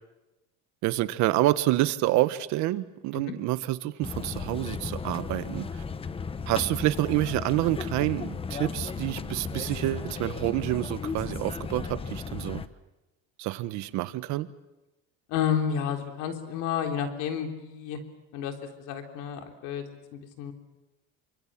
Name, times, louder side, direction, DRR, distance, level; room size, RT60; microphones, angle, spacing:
voice 1, 0.8-5.8 6.5-12.6 13.4-14.5, right 16 dB, 60° right, 12 dB, 1.5 m, -28 dB
sound 1, 4.0-12.7, left 5 dB, 15° left, 1.0 m, -35 dB
voice 2, 15.3-18.0 18.3-20.5, left 8 dB, 65° left, 4 dB, 3.7 m, -31 dB
28.5 x 25.0 x 7.5 m, 0.98 s
cardioid pair, 150°, 32 cm